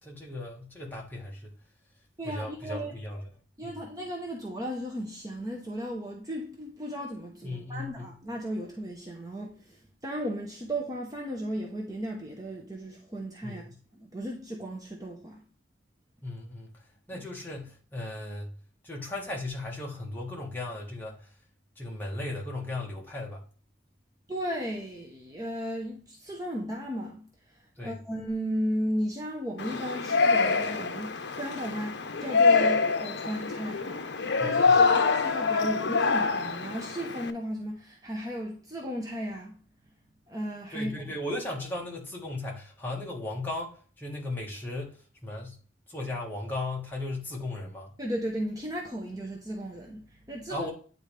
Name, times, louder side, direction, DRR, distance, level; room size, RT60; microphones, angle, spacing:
voice 1, 0.0-1.5 2.2-3.3 3.6-3.8 7.4-8.1 13.4-13.8 16.2-16.8 17.1-18.5 18.8-21.3 21.8-23.4 27.8-27.9 34.4-34.8 40.7-45.6 45.9-47.9 50.5-50.7, left 2 dB, 10° left, 1.6 m, -36 dB
voice 2, 2.2-3.0 3.6-13.6 13.9-15.4 24.3-27.2 27.8-39.6 40.3-41.2 48.0-50.7, equal, 20° right, 0.9 m, -35 dB
Yell, 29.6-37.3, left 4 dB, 65° left, 0.7 m, -25 dB
9.4 x 4.0 x 3.3 m
head